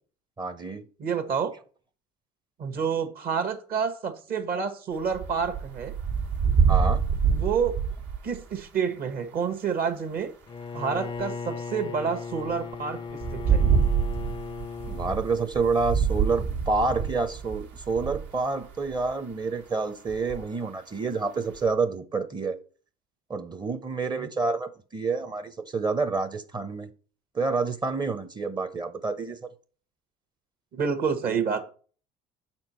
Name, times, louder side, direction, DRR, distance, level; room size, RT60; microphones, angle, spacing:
voice 1, 0.4-0.8 6.7-7.0 14.9-22.6 23.3-26.9 27.3-29.4, right 4 dB, 20° right, 0.7 m, -28 dB
voice 2, 1.0-1.5 2.6-5.9 7.3-7.7 8.2-10.3 10.7-13.0 13.3-13.6 24.2-24.3 30.7-31.7, right 6 dB, 50° right, 1.3 m, -28 dB
sound 1, 5.1-8.4 11.2-11.3 13.1-18.3 18.7-19.1 20.1-20.4 21.5-21.7, right 6 dB, 70° right, 1.7 m, -26 dB
Bowed string instrument, 10.5-15.3, left 5 dB, 25° left, 0.4 m, -37 dB
6.2 x 4.4 x 4.3 m
supercardioid pair, 85°, 19 cm